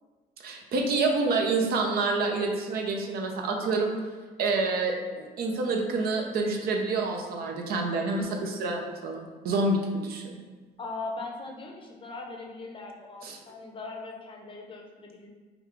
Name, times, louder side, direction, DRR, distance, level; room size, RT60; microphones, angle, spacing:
voice 1, 0.4-4.0 4.4-10.4 13.2-13.4, right 3 dB, 65° right, 2 dB, 0.6 m, -28 dB
voice 2, 10.8-15.3, left 3 dB, 30° left, 0 dB, 0.7 m, -39 dB
5.0 x 2.4 x 3.1 m, 1.4 s
cardioid pair, 110°, 17 cm